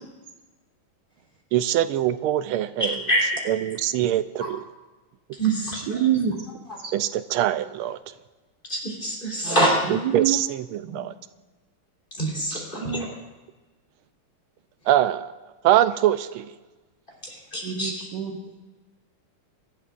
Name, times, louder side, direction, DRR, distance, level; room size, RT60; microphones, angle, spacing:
voice 1, 1.5-3.0 3.5-4.6 6.9-8.0 9.9-11.1 14.9-15.3 15.6-16.5, right 12 dB, 90° right, 12 dB, 1.5 m, -23 dB
voice 2, 2.8-3.3 4.4-4.5 5.4-5.8 8.7-9.8 12.2-13.0 17.5-18.1, right 1 dB, 25° left, -3 dB, 3.6 m, -25 dB
voice 3, 5.7-6.4 6.8-6.9 9.4-10.4 10.8-11.0 12.5-13.1 17.6-18.6, right 9 dB, 60° right, 2 dB, 1.6 m, -27 dB
24.0 x 12.0 x 2.5 m, 1.2 s
omnidirectional pair, 2.3 m